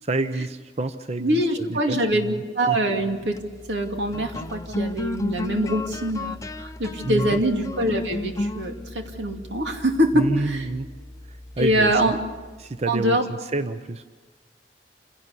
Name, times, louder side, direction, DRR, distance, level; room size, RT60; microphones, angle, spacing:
voice 1, 0.0-2.8 7.0-7.4 10.1-10.9 11.3-12.2 12.6-14.0, right 2 dB, 40° right, 10 dB, 0.7 m, -29 dB
voice 2, 1.2-3.4 3.7-10.6 11.6-12.2 12.9-13.3, right 1 dB, 90° right, 3 dB, 2.6 m, -24 dB
sound 1, 3.2-12.8, left 2 dB, 20° left, 0.6 m, -34 dB
27.5 x 17.0 x 6.8 m, 1.4 s
head